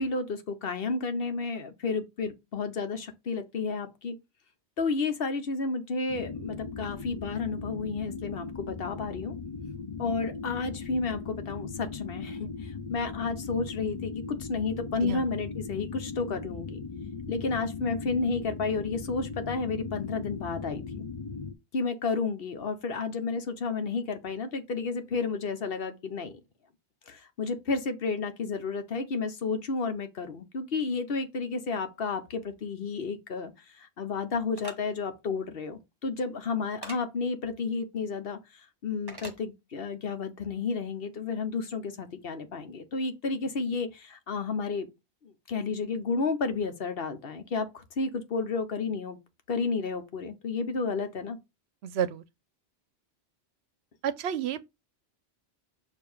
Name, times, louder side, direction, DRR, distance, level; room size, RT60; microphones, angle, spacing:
voice 1, 0.0-4.2 4.8-9.3 10.0-16.8 17.3-21.0 21.7-26.4 27.1-44.9 45.2-49.2 49.5-51.4, left 4 dB, 60° left, 1.0 m, -32 dB
cityscape drone, 6.1-21.5, left 5 dB, 40° left, 0.5 m, -38 dB
sound 1, 34.5-34.8 36.8-37.0 39.1-39.4, right 2 dB, 20° right, 1.2 m, -41 dB
voice 2, 51.8-52.2 54.0-54.6, right 9 dB, 75° right, 0.8 m, -30 dB
6.7 x 2.7 x 5.4 m
omnidirectional pair, 1.1 m